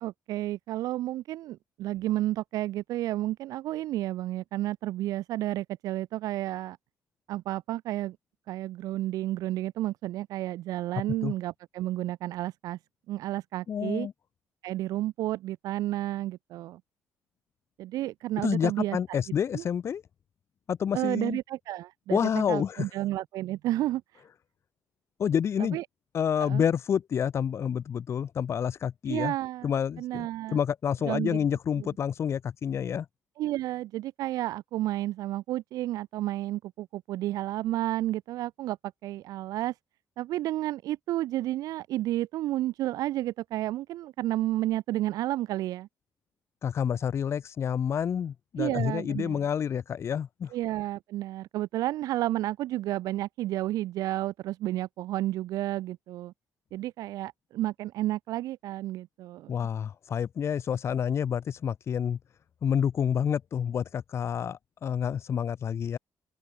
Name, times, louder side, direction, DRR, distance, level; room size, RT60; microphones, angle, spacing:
voice 1, 0.0-6.8 7.3-8.2 8.5-12.8 13.1-14.1 14.6-16.8 17.8-19.2 19.5-19.6 20.9-22.2 22.5-24.2 25.7-25.8 26.4-26.6 29.1-29.7 30.0-30.6 31.0-31.4 31.8-31.9 33.4-38.8 39.0-39.7 40.2-45.9 48.6-49.4 50.5-56.3 56.7-59.5, right 15 dB, 90° right, 1.3 m, -31 dB
voice 2, 13.7-14.1 18.4-20.0 20.7-21.4 22.1-22.9 25.2-25.8 26.1-29.3 29.6-33.0 46.6-50.5 59.5-62.2 62.6-66.0, left 8 dB, 50° left, 1.6 m, -28 dB
open air
cardioid pair, 125°, 6 cm